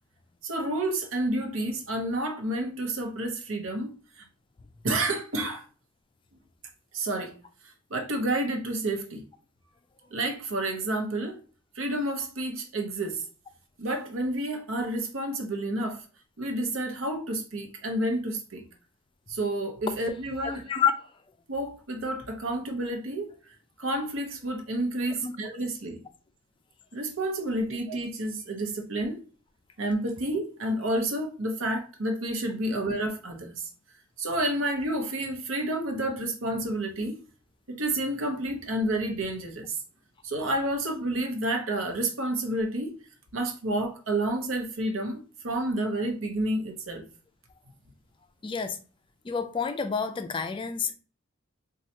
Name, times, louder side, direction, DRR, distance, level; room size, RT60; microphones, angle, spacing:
voice 1, 0.4-4.3 4.8-5.6 6.9-7.3 7.6-9.2 10.1-11.4 11.7-13.2 13.8-16.0 16.4-18.6 19.3-20.7 21.5-23.3 23.8-26.0 26.9-29.2 29.8-33.7 34.2-37.2 37.7-39.8 40.2-43.0 43.3-47.1, right 1 dB, 80° right, 0.8 m, -30 dB
voice 2, 20.4-21.2 25.2-25.3 48.4-48.8 49.2-50.9, left 6 dB, 25° left, 0.3 m, -29 dB
4.2 x 2.3 x 2.8 m
head